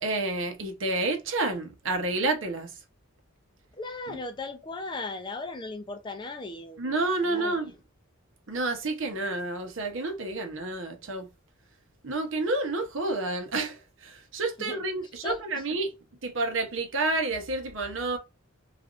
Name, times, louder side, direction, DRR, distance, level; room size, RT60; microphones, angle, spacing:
voice 1, 0.0-2.7 4.1-4.2 6.8-7.7 8.5-11.3 12.0-15.9 16.2-18.2, right 2 dB, 65° right, 0.8 m, -29 dB
voice 2, 3.7-6.8 7.2-7.7 14.6-14.8 15.2-15.6, left 3 dB, 20° left, 0.4 m, -37 dB
3.3 x 2.5 x 2.4 m
head